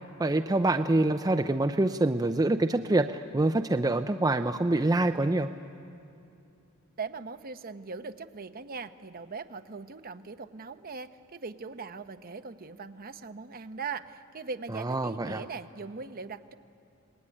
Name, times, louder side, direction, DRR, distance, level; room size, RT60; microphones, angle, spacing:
voice 1, 0.2-5.5 14.7-15.4, right 2 dB, 20° right, 7 dB, 0.5 m, -26 dB
voice 2, 7.0-16.5, right 4 dB, 45° right, 9 dB, 0.9 m, -40 dB
26.0 x 20.0 x 9.9 m, 2.7 s
head